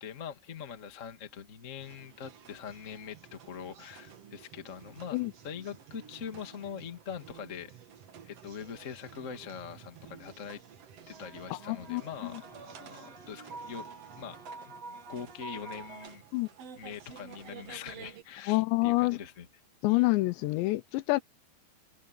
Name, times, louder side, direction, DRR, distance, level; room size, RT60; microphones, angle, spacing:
voice 1, 0.0-7.8 8.2-10.6 11.1-13.9 14.2-16.2 16.8-19.5 19.9-20.0, left 7 dB, 55° left, 0.8 m, -43 dB
sound 1, 1.8-18.2, right 8 dB, 70° right, 1.5 m, -52 dB
sound 2, 11.1-16.1, right 3 dB, 40° right, 3.8 m, -47 dB
voice 2, 11.7-12.0 16.3-16.5 18.5-19.2 19.8-21.2, left 22 dB, 80° left, 2.9 m, -27 dB
omnidirectional pair, 5.2 m